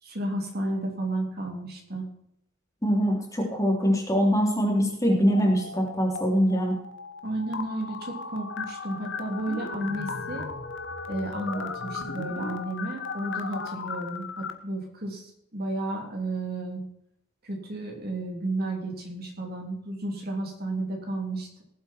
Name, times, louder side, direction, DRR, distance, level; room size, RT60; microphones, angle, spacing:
voice 1, 0.0-2.1 7.2-10.5 11.1-16.9 17.4-21.6, right 2 dB, 50° right, 1 dB, 3.4 m, -32 dB
voice 2, 2.8-6.7, equal, 15° left, -1 dB, 3.5 m, -23 dB
sound 1, 5.3-6.2 6.5-14.5, left 4 dB, 60° left, 1.3 m, -36 dB
19.0 x 7.9 x 4.6 m, 0.74 s
head